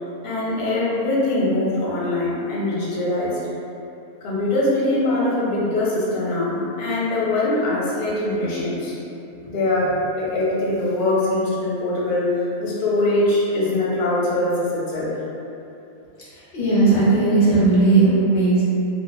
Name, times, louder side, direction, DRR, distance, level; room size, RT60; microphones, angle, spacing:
voice 1, 0.2-3.4 4.2-8.9 9.5-15.1, left 2 dB, 75° left, -7 dB, 1.0 m, -22 dB
voice 2, 16.3-18.6, right 3 dB, 45° left, -10 dB, 0.6 m, -17 dB
2.7 x 2.1 x 2.2 m, 2.8 s
omnidirectional pair, 1.7 m